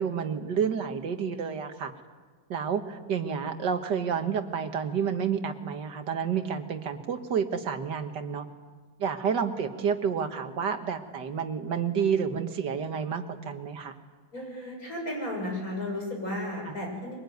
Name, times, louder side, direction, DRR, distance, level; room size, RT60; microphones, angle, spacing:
voice 1, 0.0-1.9 2.5-8.5 9.0-13.9 16.7-16.8, right 7 dB, 65° right, 7 dB, 2.1 m, -30 dB
voice 2, 14.3-17.1, left 1 dB, 50° left, 1 dB, 7.0 m, -34 dB
23.5 x 21.0 x 9.4 m, 1.4 s
omnidirectional pair, 2.0 m